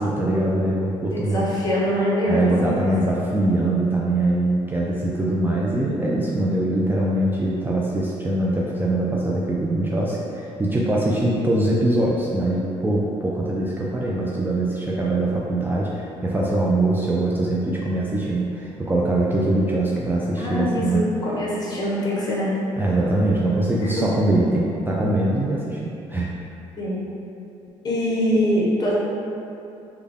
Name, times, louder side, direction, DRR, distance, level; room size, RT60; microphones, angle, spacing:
voice 1, 0.0-1.4 2.3-21.1 22.8-26.3, right 1 dB, 15° right, -5 dB, 0.4 m, -22 dB
voice 2, 1.1-2.8 20.4-22.5 23.8-24.0 26.8-27.0 27.8-28.9, left 1 dB, 30° left, -6 dB, 1.0 m, -23 dB
3.4 x 2.3 x 3.4 m, 2.7 s
supercardioid pair, 75°, 13 cm